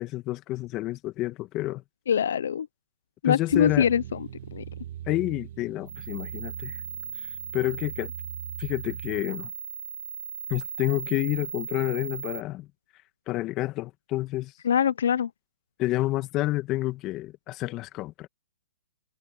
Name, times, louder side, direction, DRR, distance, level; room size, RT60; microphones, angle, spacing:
voice 1, 0.0-1.8 3.2-3.9 5.1-6.8 7.5-8.1 8.6-9.5 10.5-12.7 13.3-14.5 15.8-18.3, left 17 dB, 30° left, 1.7 m, -29 dB
voice 2, 2.1-2.7 3.2-4.2 4.5-4.6 14.6-15.3, left 8 dB, 70° left, 0.8 m, -23 dB
sound 1, 3.5-9.2, right 11 dB, 55° right, 2.6 m, -41 dB
sound 2, 5.9-12.4, right 5 dB, 90° right, 5.1 m, -38 dB
hypercardioid pair, 135°, 0 cm